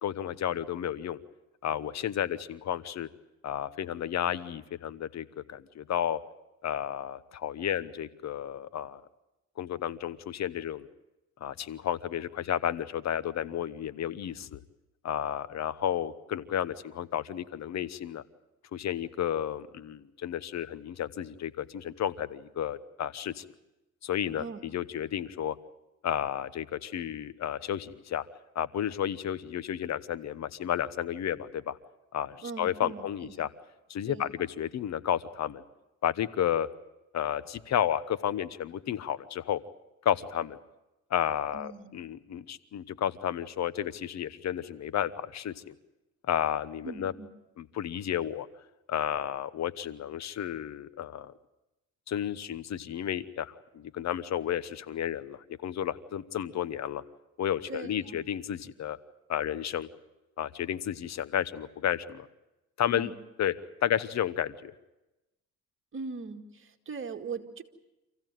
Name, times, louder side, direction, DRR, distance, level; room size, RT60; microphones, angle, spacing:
voice 1, 0.0-1.2 1.6-3.1 3.4-6.2 6.6-9.0 9.6-10.9 11.4-14.6 15.0-18.2 18.7-23.4 24.0-25.6 26.0-28.3 28.5-31.8 32.1-33.5 33.9-35.6 36.0-36.7 37.1-39.6 40.0-40.6 41.1-45.7 46.3-47.1 47.6-48.5 48.9-51.3 52.1-57.0 57.4-59.0 59.3-59.9 60.4-62.3 62.8-63.1 63.4-63.5 63.8-64.7, left 10 dB, 65° left, 16 dB, 1.0 m, -32 dB
voice 2, 32.4-33.3 34.1-34.3 41.5-41.9 46.8-47.3 57.7-58.2 62.9-63.2 65.9-67.6, right 4 dB, 45° right, 4 dB, 2.3 m, -40 dB
26.5 x 16.0 x 9.2 m, 0.97 s
cardioid pair, 90°, 30 cm